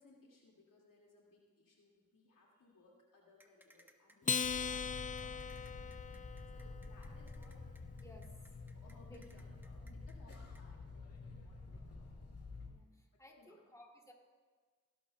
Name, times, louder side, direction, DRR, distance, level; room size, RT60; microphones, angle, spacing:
voice 1, 0.0-4.9 5.2-5.7 6.1-7.6 8.7-12.1 13.4-13.6, left 2 dB, 90° left, -2 dB, 2.1 m, -65 dB
sound 1, 3.4-10.6, right 1 dB, 5° right, 1.1 m, -66 dB
Acoustic guitar, 4.2-6.9, left 6 dB, 25° left, 0.4 m, -39 dB
sound 2, 4.4-12.7, left 3 dB, 50° left, 1.9 m, -49 dB
voice 2, 4.5-5.0 8.0-8.3 9.1-9.2 9.8-10.0 12.6-14.1, left 1 dB, 10° left, 0 dB, 2.4 m, -60 dB
18.0 x 11.5 x 2.2 m, 1.5 s
cardioid pair, 45°, 32 cm